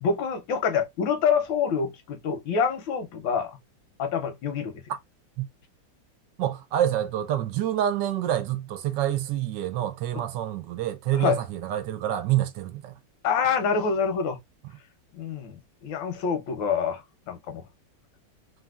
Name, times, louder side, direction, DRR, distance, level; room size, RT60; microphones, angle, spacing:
voice 1, 0.0-3.6 4.0-4.7 11.2-11.4 13.2-14.4 15.1-17.6, left 6 dB, 90° left, 1.5 m, -26 dB
voice 2, 6.4-12.9, right 12 dB, 75° right, 1.2 m, -27 dB
3.3 x 2.5 x 2.3 m
omnidirectional pair, 2.0 m